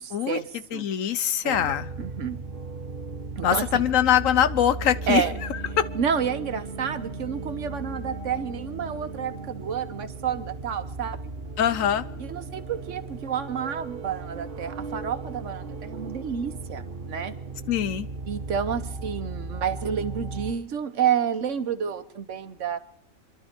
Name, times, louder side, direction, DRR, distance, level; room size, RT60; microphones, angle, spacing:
voice 1, 0.0-0.8 1.4-1.7 2.0-2.4 3.4-3.8 5.1-5.3 5.9-11.4 12.2-17.3 18.3-22.8, right 7 dB, 70° right, 11 dB, 1.3 m, -30 dB
voice 2, 0.7-1.9 3.4-5.2 5.5-5.9 11.6-12.1 17.7-18.1, left 10 dB, 85° left, 14 dB, 1.2 m, -23 dB
sound 1, 1.5-20.5, right 3 dB, 45° right, 1.3 m, -36 dB
27.5 x 11.5 x 4.4 m, 0.77 s
omnidirectional pair, 1.3 m